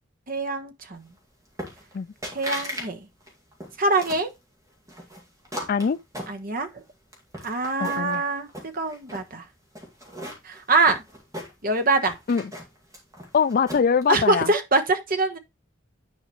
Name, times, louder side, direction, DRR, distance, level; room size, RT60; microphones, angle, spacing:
voice 1, 0.3-1.1 2.3-3.1 3.8-4.3 6.3-6.8 7.4-9.5 10.4-11.0 11.6-12.1 14.1-15.4, right 3 dB, 45° right, 1.2 m, -24 dB
sound 1, 1.6-2.0 2.2-2.9 3.2-4.3 4.9-6.8 7.1-8.2 8.5-9.3 9.8-11.8 12.1-14.0, equal, 15° right, 2.1 m, -37 dB
voice 2, 7.8-8.2 12.3-12.4 13.3-14.5, left 6 dB, 45° left, 0.4 m, -22 dB
9.7 x 4.9 x 3.1 m
head